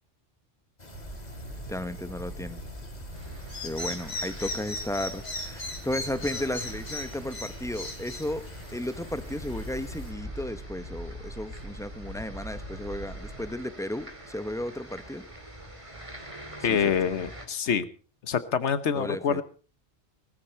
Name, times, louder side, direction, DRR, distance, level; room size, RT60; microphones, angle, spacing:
sound 1, 0.8-10.1, left 2 dB, 40° left, 2.7 m, -39 dB
sound 2, 0.9-13.5, equal, 50° right, 6.6 m, -42 dB
voice 1, 1.7-2.6 3.6-15.2 16.7-16.9 18.9-19.4, left 1 dB, 5° left, 11 dB, 0.9 m, -34 dB
sound 3, 3.1-17.5, right 1 dB, 30° right, 2.7 m, -46 dB
voice 2, 16.6-17.9 18.2-19.4, left 7 dB, 90° left, 13 dB, 1.3 m, -26 dB
19.0 x 14.0 x 4.4 m, 0.38 s
omnidirectional pair, 1.1 m